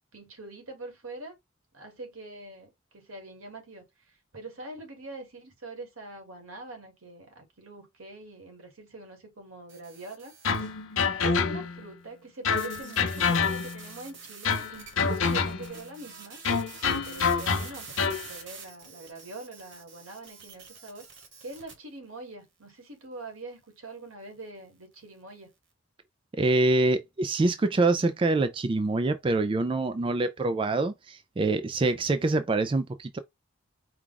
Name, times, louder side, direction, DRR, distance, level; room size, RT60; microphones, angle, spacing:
voice 1, 0.1-1.3 1.7-10.3 11.2-16.4 17.0-21.0 21.4-25.5, right 2 dB, 85° right, 1.8 m, -44 dB
sound 1, 9.7-10.8 12.5-21.7, right 5 dB, 60° right, 1.2 m, -47 dB
sound 2, 10.4-11.9 12.4-13.9 14.4-15.8 16.4-18.3, left 5 dB, 75° left, 0.8 m, -27 dB
voice 2, 26.4-33.2, right 2 dB, 25° right, 0.3 m, -25 dB
4.7 x 2.2 x 3.8 m
head